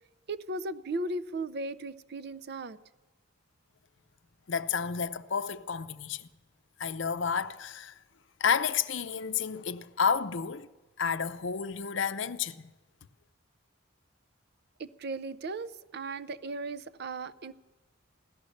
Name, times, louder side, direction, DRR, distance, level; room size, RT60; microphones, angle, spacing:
voice 1, 0.3-2.8 14.8-17.5, right 2 dB, 50° right, 0.5 m, -36 dB
voice 2, 4.5-6.3 6.8-8.0 8.4-10.7 11.0-12.7, left 6 dB, 60° left, 0.6 m, -31 dB
16.5 x 12.5 x 6.4 m
head